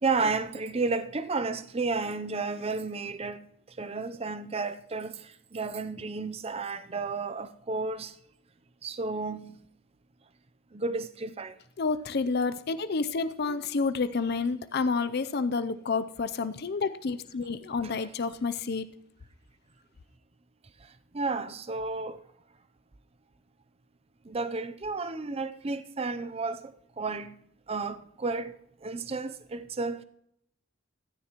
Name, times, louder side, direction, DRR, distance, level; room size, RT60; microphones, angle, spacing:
voice 1, 0.0-3.4 3.8-8.1 8.8-9.6 10.7-11.6 13.4-13.6 21.1-22.2 24.3-26.7 27.0-27.3 27.7-28.5 28.8-30.0, right 3 dB, 30° right, 0.5 m, -32 dB
voice 2, 11.8-18.9, left 4 dB, 50° left, 0.5 m, -29 dB
15.0 x 13.5 x 3.0 m
head